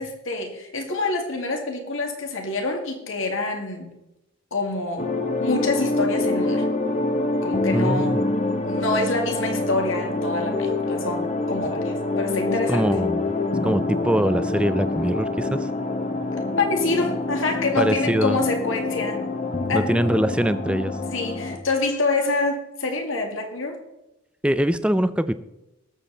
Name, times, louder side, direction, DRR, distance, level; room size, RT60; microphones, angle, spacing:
voice 1, 0.0-3.9 4.5-5.1 5.4-6.6 7.4-12.9 16.6-19.2 19.7-20.0 21.1-23.8, left 3 dB, 70° left, 3 dB, 2.2 m, -26 dB
sound 1, 5.0-21.6, left 2 dB, 35° left, 1.0 m, -26 dB
voice 2, 7.7-8.2 12.7-13.2 13.6-15.7 17.8-18.4 19.7-21.0 24.4-25.4, equal, 5° right, 12 dB, 0.4 m, -23 dB
18.5 x 7.3 x 4.1 m, 0.93 s
head